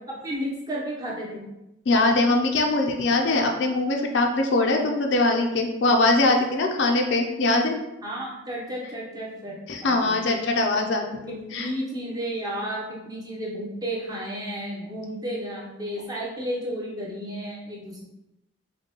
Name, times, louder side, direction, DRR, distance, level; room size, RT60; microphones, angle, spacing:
voice 1, 0.1-1.5 8.0-10.2 11.3-18.0, equal, 20° right, -4 dB, 0.8 m, -33 dB
voice 2, 1.9-7.8 9.7-11.7, left 2 dB, 65° left, 3 dB, 0.5 m, -22 dB
5.1 x 2.3 x 2.9 m, 0.92 s
head